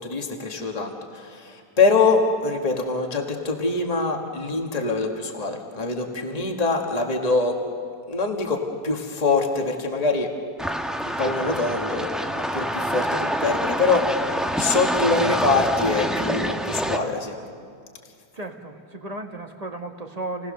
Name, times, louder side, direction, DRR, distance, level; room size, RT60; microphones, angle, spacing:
voice 1, 0.0-7.6 8.1-10.3 11.2-17.4, left 3 dB, 25° left, 2 dB, 1.9 m, -24 dB
sound 1, 10.6-17.0, equal, ahead, 0.9 m, -26 dB
voice 2, 18.3-20.5, right 2 dB, 25° right, 4 dB, 1.4 m, -34 dB
29.5 x 18.5 x 6.7 m, 2.3 s
omnidirectional pair, 1.6 m